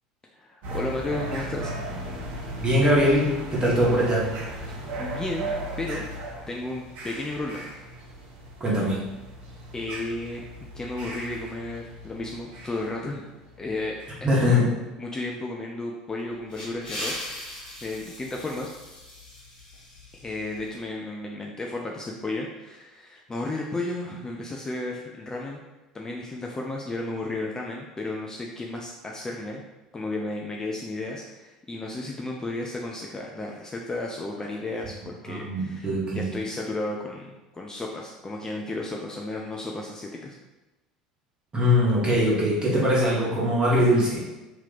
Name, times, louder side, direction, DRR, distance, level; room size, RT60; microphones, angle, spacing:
voice 1, 0.3-1.7 4.7-6.1 6.5-7.7 9.7-13.3 13.6-14.0 14.4-14.7 15.0-17.2 17.8-18.7 20.2-25.6 25.9-29.6 29.9-40.4, left 2 dB, 15° left, -1 dB, 0.4 m, -33 dB
sound 1, 0.6-14.4, right 1 dB, 50° right, 0.8 m, -37 dB
voice 2, 2.6-4.3 8.6-9.0 14.2-14.6 35.3-36.3 41.5-44.2, equal, 25° right, -6 dB, 1.4 m, -22 dB
sound 2, 16.2-20.7, left 1 dB, 50° left, 1.5 m, -39 dB
2.9 x 2.9 x 3.8 m, 1.1 s
figure-of-eight pair, 70°, 4 cm